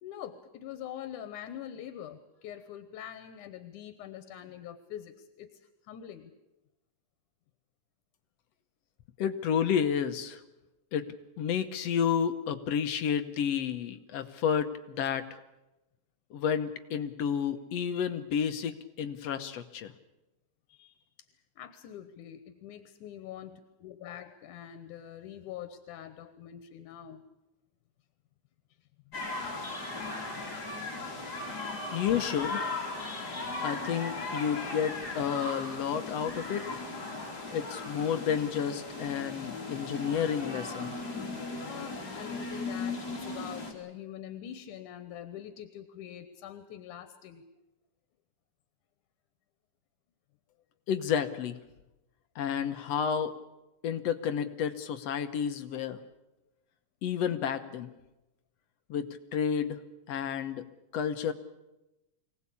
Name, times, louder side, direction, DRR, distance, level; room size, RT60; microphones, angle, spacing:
voice 1, 0.0-5.6 5.9-6.3 20.7-21.0 21.6-27.2 29.1-29.2 31.2-31.3 41.6-47.4, left 10 dB, 85° left, 10 dB, 2.5 m, -44 dB
voice 2, 9.2-10.4 10.9-15.2 16.3-19.9 31.9-32.7 33.6-36.9 37.5-40.9 50.9-51.6 52.4-53.3 53.8-56.0 57.0-57.9 58.9-59.8 60.1-60.6 60.9-61.3, left 8 dB, 65° left, 9 dB, 1.9 m, -31 dB
sound 1, 29.1-43.7, left 3 dB, 30° left, 3.7 m, -37 dB
24.0 x 18.0 x 8.5 m, 0.99 s
omnidirectional pair, 3.5 m